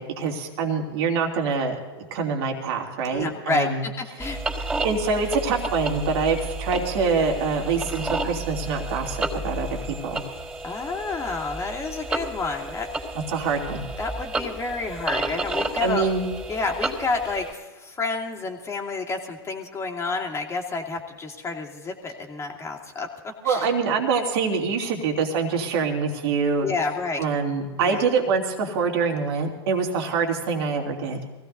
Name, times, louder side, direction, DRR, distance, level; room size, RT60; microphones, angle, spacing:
voice 1, 0.0-3.8 4.8-10.2 13.3-13.8 15.8-16.3 23.4-26.7 27.2-31.2, right 5 dB, 60° right, 1 dB, 2.9 m, -25 dB
voice 2, 3.1-4.4 10.6-12.9 14.0-16.1 16.5-23.7 26.6-27.2 27.8-28.0, left 4 dB, 20° left, 0 dB, 2.5 m, -30 dB
sound 1, 4.2-17.5, right 2 dB, 10° right, 3.9 m, -31 dB
24.0 x 17.0 x 2.7 m, 1.3 s
hypercardioid pair, 105°, 14 cm